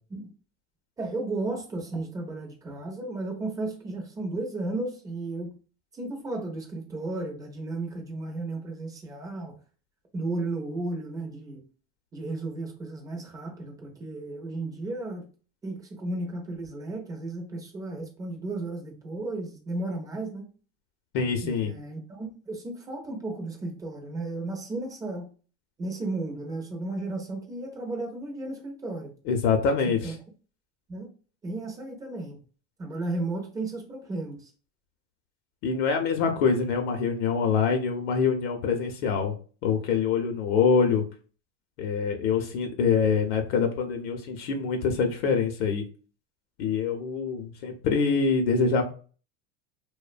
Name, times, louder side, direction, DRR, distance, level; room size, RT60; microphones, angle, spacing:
voice 1, 1.0-5.5 5.9-9.5 10.1-11.6 12.1-15.2 15.6-20.5 21.4-25.3 25.8-29.1 29.9-30.1 30.9-31.1 31.4-32.4 32.8-34.5, right 2 dB, 10° right, 0.3 m, -34 dB
voice 2, 21.1-21.7 29.3-30.1 35.6-39.3 39.6-41.0 41.8-45.8 46.6-48.8, left 5 dB, 55° left, 0.6 m, -25 dB
2.6 x 2.1 x 2.4 m
supercardioid pair, 135°, 38 cm